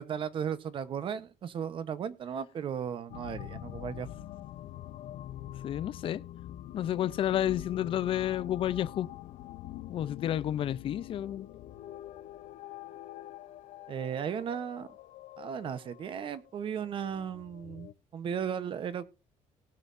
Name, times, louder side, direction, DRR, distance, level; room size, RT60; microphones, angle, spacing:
voice 1, 0.0-4.1 13.9-14.9 15.4-19.0, right 8 dB, 40° right, 1.0 m, -36 dB
sound 1, 3.1-17.9, left 14 dB, 80° left, 0.7 m, -45 dB
voice 2, 5.6-6.2 6.7-9.1 9.9-11.5, left 11 dB, 45° left, 0.5 m, -30 dB
19.0 x 7.4 x 2.6 m
cardioid pair, 175°, 13 cm